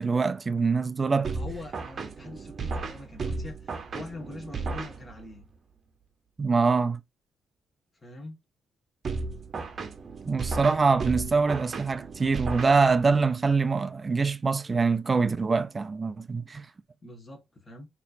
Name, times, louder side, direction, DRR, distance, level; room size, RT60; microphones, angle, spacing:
voice 1, 0.0-1.3 6.4-7.0 10.3-16.7, right 4 dB, 30° right, 0.4 m, -24 dB
sound 1, 1.2-5.4 9.0-13.3, right 4 dB, 45° right, 0.8 m, -35 dB
voice 2, 1.3-5.5 8.0-8.4 10.4-11.1 17.0-17.9, left 2 dB, 30° left, 1.6 m, -43 dB
4.2 x 3.0 x 2.6 m
cardioid pair, 90°, 0 cm